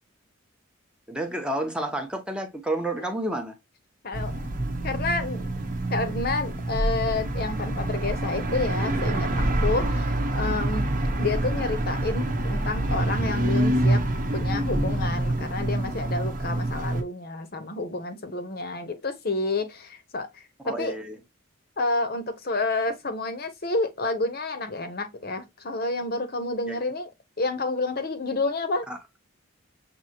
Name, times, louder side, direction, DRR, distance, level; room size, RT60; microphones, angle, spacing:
voice 1, 1.1-3.6 20.6-21.2 26.7-26.8 28.9-29.0, right 1 dB, 5° right, 0.7 m, -30 dB
voice 2, 4.0-4.4 4.8-5.5 5.9-10.9 11.2-14.0 14.3-21.0 21.8-27.1 27.4-28.9, left 3 dB, 50° left, 0.8 m, -29 dB
sound 1, 4.1-17.0, right 1 dB, 40° right, 0.9 m, -26 dB
6.2 x 2.7 x 2.8 m
head